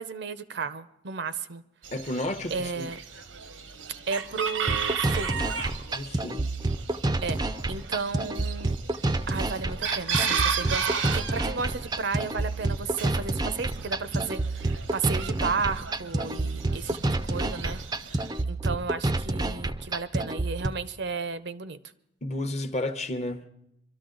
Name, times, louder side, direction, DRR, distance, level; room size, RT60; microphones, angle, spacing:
voice 1, 0.0-1.6 2.5-3.0 4.1-5.3 7.2-7.4 7.7-8.8 9.3-17.0 17.3-17.8 18.2-21.8, right 5 dB, 60° right, 0.6 m, -33 dB
Chicken rooster, 1.8-18.4, right 6 dB, 85° right, 1.0 m, -35 dB
voice 2, 1.9-2.9 5.9-6.5 22.2-23.5, left 1 dB, 35° left, 0.8 m, -32 dB
sound 1, 4.7-20.7, right 2 dB, 20° right, 0.5 m, -29 dB
24.0 x 13.0 x 3.8 m
head